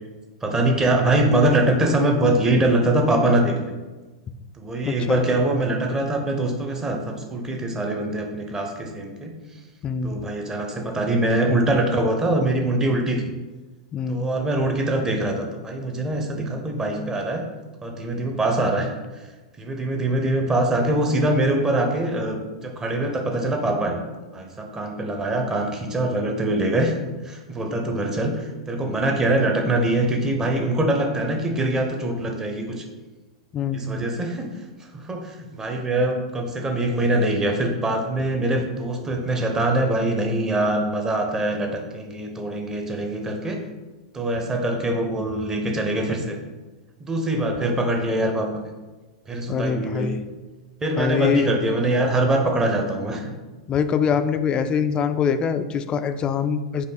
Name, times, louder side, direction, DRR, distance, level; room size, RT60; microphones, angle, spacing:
voice 1, 0.4-3.7 4.6-9.3 10.0-13.2 14.1-17.4 17.8-18.9 19.6-24.0 24.3-27.0 27.3-32.8 33.7-34.5 34.9-43.6 44.1-46.4 47.0-48.7 49.3-50.1 50.8-53.2, right 1 dB, 15° right, 2 dB, 0.8 m, -23 dB
voice 2, 4.8-5.2 9.8-10.1 13.9-14.3 33.5-34.0 49.5-50.2 51.0-51.5 53.7-56.9, left 6 dB, 25° left, 9 dB, 0.3 m, -24 dB
5.1 x 2.3 x 4.0 m, 1.2 s
hypercardioid pair, 105°, 3 cm